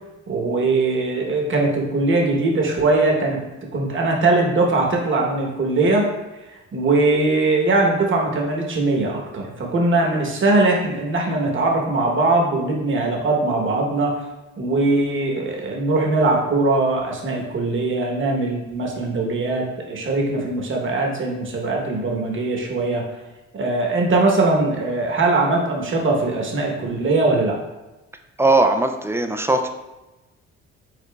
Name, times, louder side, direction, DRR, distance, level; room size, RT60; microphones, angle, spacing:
voice 1, 0.3-3.4 3.7-6.1 6.7-14.2 14.6-23.0 23.5-27.6, right 2 dB, 40° right, 0 dB, 1.0 m, -21 dB
voice 2, 28.4-29.7, right 2 dB, 10° right, 5 dB, 0.3 m, -19 dB
5.1 x 3.8 x 2.3 m, 1.0 s
cardioid pair, 90°, 30 cm